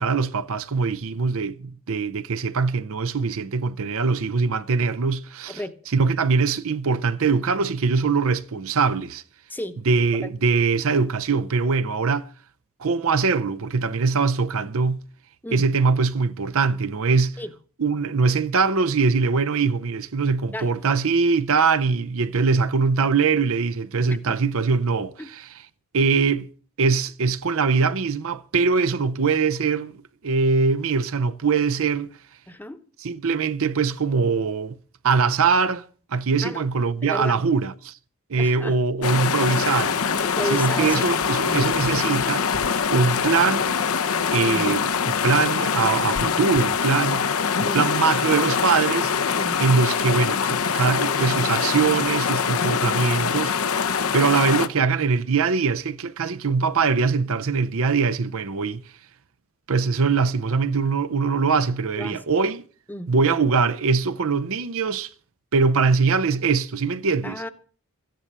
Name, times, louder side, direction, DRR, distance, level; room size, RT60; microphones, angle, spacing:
voice 1, 0.0-5.6 5.9-9.2 9.9-12.3 12.8-15.0 15.5-17.4 17.8-25.5 25.9-26.5 26.8-29.9 30.2-32.1 33.0-34.8 35.0-35.8 36.1-37.9 38.3-40.0 40.5-42.5 42.9-43.8 44.3-47.3 47.6-49.1 49.6-53.6 54.1-58.8 59.7-62.6 63.1-65.1 65.5-67.4, right 5 dB, 65° right, 0.7 m, -22 dB
voice 2, 32.5-32.8 36.4-36.6 37.0-37.4 38.4-38.8 40.2-41.1 41.4-41.6 44.4-44.7 47.6-47.9 49.4-49.6 61.9-62.2 62.9-63.1 67.2-67.5, left 1 dB, 10° left, 1.0 m, -33 dB
sound 1, 39.0-54.7, left 6 dB, 65° left, 0.8 m, -24 dB
14.0 x 10.5 x 6.7 m
head